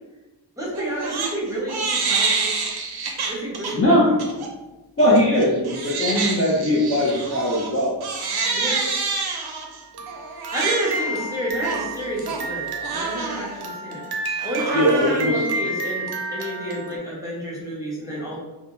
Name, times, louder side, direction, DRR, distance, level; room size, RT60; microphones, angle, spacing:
voice 1, 0.6-2.5 3.3-3.9 8.5-8.9 10.5-18.4, right 1 dB, 5° right, -6 dB, 0.9 m, -30 dB
Crying sobbing, 0.7-1.3 1.7-3.7 4.2-4.5 5.0-17.0, right 4 dB, 60° right, 0.5 m, -27 dB
voice 2, 3.7-4.1 4.3-4.4 5.0-7.9 14.7-15.5, equal, 30° left, -7 dB, 0.5 m, -20 dB
2.2 x 2.1 x 3.0 m, 1.1 s
wide cardioid pair, 55°, 44 cm